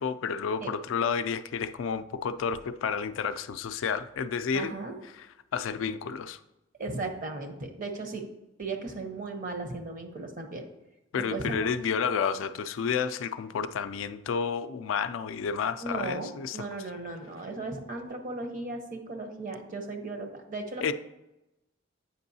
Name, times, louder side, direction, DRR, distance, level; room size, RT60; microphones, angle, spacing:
voice 1, 0.0-4.7 5.2-5.3 5.5-6.4 11.1-16.7 20.8-20.9, left 6 dB, 75° left, 11 dB, 0.3 m, -30 dB
voice 2, 4.5-5.0 6.8-8.2 8.6-10.6 11.3-11.7 15.8-20.9, right 3 dB, 40° right, 4 dB, 0.8 m, -36 dB
8.0 x 5.3 x 2.7 m, 0.95 s
head